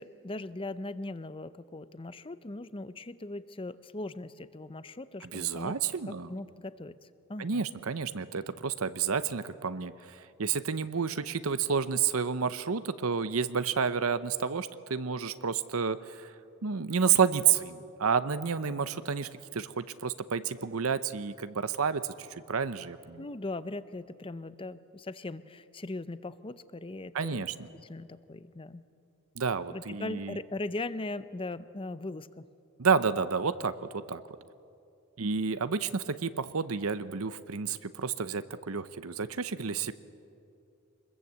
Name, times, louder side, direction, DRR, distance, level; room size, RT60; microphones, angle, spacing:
voice 1, 0.0-5.7 6.1-7.0 7.3-7.6 23.2-27.4 27.8-28.8 29.7-32.5, left 2 dB, 25° left, 14 dB, 0.6 m, -39 dB
voice 2, 5.3-6.3 7.4-16.3 16.6-23.2 27.1-27.5 29.4-30.4 32.8-34.2 35.2-39.9, right 6 dB, 75° right, 12 dB, 0.8 m, -30 dB
25.0 x 21.0 x 8.1 m, 2.6 s
head